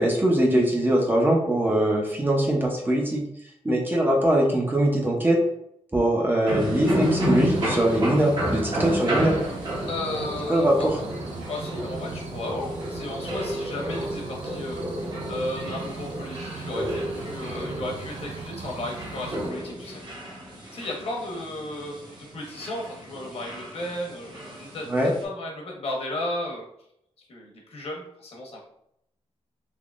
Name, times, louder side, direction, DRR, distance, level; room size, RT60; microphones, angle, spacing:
voice 1, 0.0-3.2 3.6-5.4 5.9-9.4 10.5-10.9 24.9-25.1, right 1 dB, 15° right, -1 dB, 0.6 m, -22 dB
sound 1, 6.5-25.2, equal, 40° right, 0.9 m, -31 dB
sound 2, 6.9-19.5, right 4 dB, 70° right, 0.4 m, -38 dB
voice 2, 9.9-11.0 11.5-14.8 15.3-20.0 20.7-26.6 27.3-28.6, left 1 dB, 60° left, -1 dB, 1.0 m, -34 dB
3.6 x 2.9 x 2.4 m, 0.75 s
wide cardioid pair, 155°, 12 cm